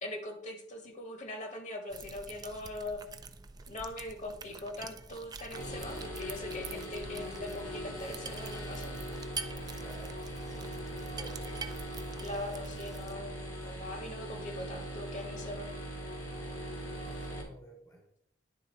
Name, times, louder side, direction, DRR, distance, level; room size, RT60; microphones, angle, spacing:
voice 1, 0.0-3.0 3.7-9.0 12.2-15.7, left 1 dB, 40° left, 4 dB, 1.2 m, -41 dB
sound 1, 1.9-13.1, right 4 dB, 20° right, 0.4 m, -46 dB
sound 2, 5.5-17.4, equal, 70° left, 2.1 m, -40 dB
voice 2, 9.8-10.2 10.5-10.8 11.1-11.6 13.6-13.7 17.0-18.1, equal, 15° left, 1 dB, 0.9 m, -52 dB
10.5 x 3.8 x 4.3 m, 0.76 s
head